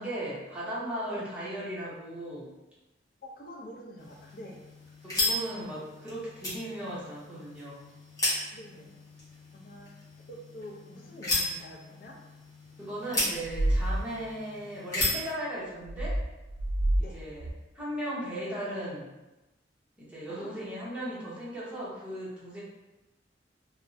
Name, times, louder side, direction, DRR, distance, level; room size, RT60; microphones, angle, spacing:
voice 1, 0.0-2.5 5.0-7.9 12.8-16.1 17.0-17.5 17.7-19.1 20.0-22.6, right 1 dB, 5° right, -9 dB, 0.7 m, -37 dB
voice 2, 3.2-4.6 8.5-9.0 9.5-9.9 10.3-12.1 17.0-17.2 20.3-20.5, equal, 50° left, 0 dB, 0.4 m, -46 dB
sound 1, 4.0-15.3, left 1 dB, 20° left, 0.8 m, -35 dB
sound 2, 13.4-14.0 15.9-17.0 17.4-17.5, right 1 dB, 75° right, 0.4 m, -27 dB
2.5 x 2.0 x 2.5 m, 1.0 s
head